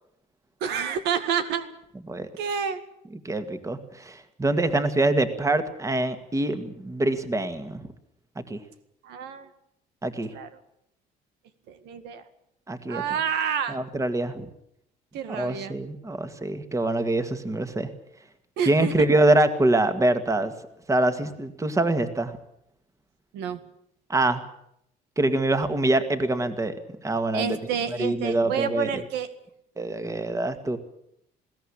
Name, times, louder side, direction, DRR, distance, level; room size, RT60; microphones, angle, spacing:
voice 1, 0.6-1.7 2.4-2.8 9.0-9.5 10.3-10.5 11.7-12.2 12.9-13.8 15.1-15.7 18.6-19.1 23.3-23.6 27.3-29.3, right 7 dB, 85° right, 9 dB, 2.0 m, -29 dB
voice 2, 3.2-7.8 8.4-8.6 10.0-10.3 12.7-13.0 13.7-14.5 15.3-17.9 18.7-20.5 20.9-22.4 24.1-24.4 25.2-26.7 27.0-27.6 28.0-29.0 29.8-30.8, right 2 dB, 20° right, 9 dB, 2.1 m, -24 dB
21.0 x 16.5 x 8.8 m, 0.76 s
cardioid pair, 110°, 17 cm